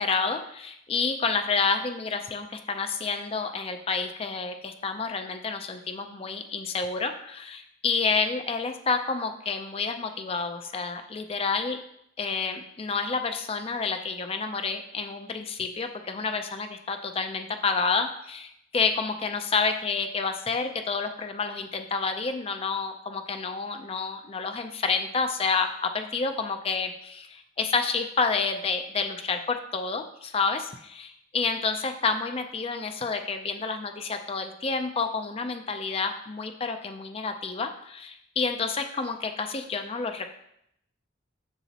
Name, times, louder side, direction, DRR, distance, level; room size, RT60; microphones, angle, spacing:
voice 1, 0.0-11.8 12.2-40.3, left 4 dB, 30° left, 6 dB, 0.5 m, -29 dB
7.0 x 6.9 x 2.8 m, 0.75 s
head